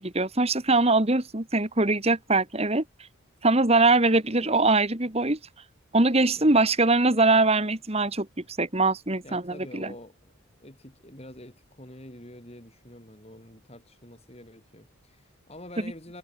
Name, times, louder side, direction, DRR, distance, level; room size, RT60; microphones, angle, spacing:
voice 1, 0.0-2.8 3.4-5.4 5.9-8.3 8.6-9.9, right 2 dB, 30° right, 1.8 m, -22 dB
voice 2, 6.0-6.5 9.2-10.3 10.6-16.2, left 1 dB, 30° left, 6.1 m, -47 dB
head